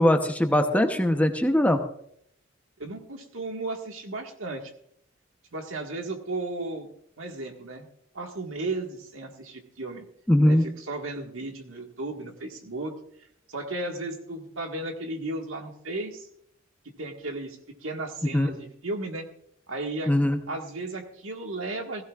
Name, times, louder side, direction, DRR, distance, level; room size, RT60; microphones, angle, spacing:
voice 1, 0.0-1.8 10.3-10.6 18.3-18.5 20.1-20.4, left 1 dB, 5° left, 6 dB, 0.8 m, -21 dB
voice 2, 2.8-4.7 5.5-6.9 7.2-7.9 8.1-10.0 10.4-12.9 13.5-16.3 17.0-19.3 19.7-20.1 20.5-22.0, right 2 dB, 80° right, 3 dB, 1.8 m, -34 dB
16.5 x 16.0 x 2.4 m, 0.70 s
head